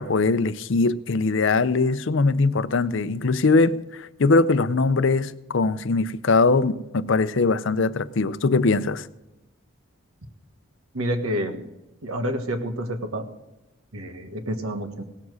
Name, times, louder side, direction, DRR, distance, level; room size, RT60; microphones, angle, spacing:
voice 1, 0.0-9.1, left 3 dB, 60° left, 0.5 m, -21 dB
voice 2, 10.9-11.7 12.0-13.2 13.9-15.0, equal, 80° right, 1.6 m, -28 dB
17.5 x 7.2 x 6.3 m
head